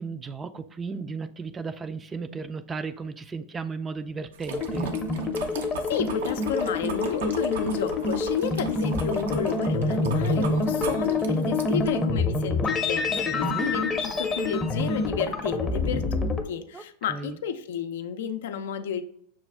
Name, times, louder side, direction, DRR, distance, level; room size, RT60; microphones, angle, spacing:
voice 1, 0.0-5.0 13.1-13.7 16.7-16.8 17.1-17.4, right 4 dB, 20° right, 11 dB, 0.4 m, -35 dB
sound 1, 4.3-12.0, right 5 dB, 75° right, 0.6 m, -39 dB
sound 2, 4.5-16.4, left 2 dB, 20° left, 0.6 m, -27 dB
voice 2, 5.9-19.0, left 8 dB, 70° left, 9 dB, 0.4 m, -32 dB
6.1 x 2.3 x 3.4 m, 0.66 s
hypercardioid pair, 100°, 0 cm